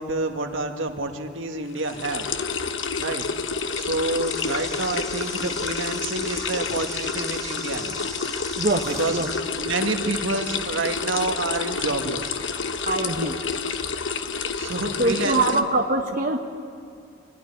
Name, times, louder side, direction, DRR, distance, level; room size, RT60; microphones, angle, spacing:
voice 1, 0.0-2.3 3.0-3.3 3.7-8.1 8.9-9.2 9.5-12.4 14.6-15.6, right 2 dB, 75° right, 4 dB, 1.8 m, -28 dB
sound 1, 1.7-15.6, left 5 dB, 70° left, 1.1 m, -29 dB
sound 2, 4.2-9.4, right 1 dB, ahead, 2.6 m, -40 dB
voice 2, 8.6-9.3 12.9-13.4 15.0-16.4, right 2 dB, 45° right, 1 dB, 1.1 m, -23 dB
25.0 x 16.0 x 9.8 m, 2.4 s
head